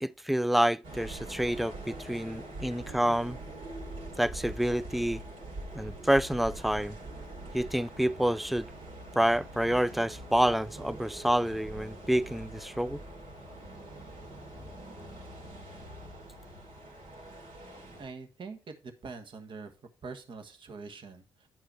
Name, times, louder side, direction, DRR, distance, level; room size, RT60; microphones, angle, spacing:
voice 1, 0.0-3.4 4.2-5.2 5.8-7.0 7.5-8.7 9.2-13.0, right 1 dB, ahead, 0.3 m, -28 dB
sound 1, 0.8-18.1, right 2 dB, 70° right, 3.1 m, -44 dB
voice 2, 18.0-19.7 20.0-21.5, right 4 dB, 50° right, 1.4 m, -44 dB
10.5 x 4.8 x 4.3 m
supercardioid pair, 55°, 11 cm